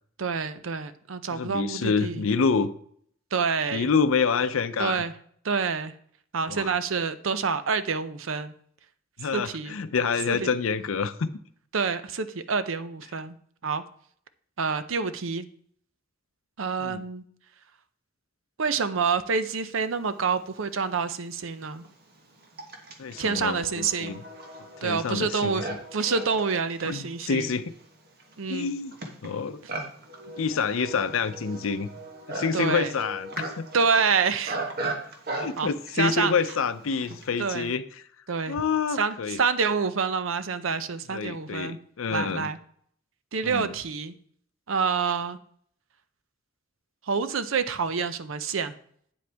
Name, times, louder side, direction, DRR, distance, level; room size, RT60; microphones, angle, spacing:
voice 1, 0.2-2.2 3.3-3.9 4.8-5.1 5.4-5.9 6.3-8.5 9.3-9.7 10.4-10.5 11.7-13.3 13.6-13.8 14.6-15.5 16.6-17.2 18.6-21.8 23.2-24.2 24.8-27.5 28.4-28.7 32.5-32.9 33.7-34.6 35.6-35.7 36.0-36.3 37.4-37.7 38.3-38.6 38.9-41.8 42.1-42.6 43.3-44.1 44.7-45.4 47.1-48.7, right 5 dB, 70° right, 12 dB, 0.6 m, -27 dB
voice 2, 1.3-2.7 3.7-5.0 6.5-6.7 9.2-11.3 16.8-17.0 23.0-24.2 24.8-25.7 26.8-27.7 28.5-29.0 29.2-29.6 30.4-31.9 32.3-33.7 35.3-37.8 38.5-39.4 41.1-42.5 43.4-43.7, left 5 dB, 75° left, 11 dB, 0.5 m, -27 dB
Livestock farm animals working animals, 20.6-20.7 21.4-37.4, right 2 dB, 50° right, 1.3 m, -38 dB
8.8 x 7.8 x 3.4 m, 0.62 s
head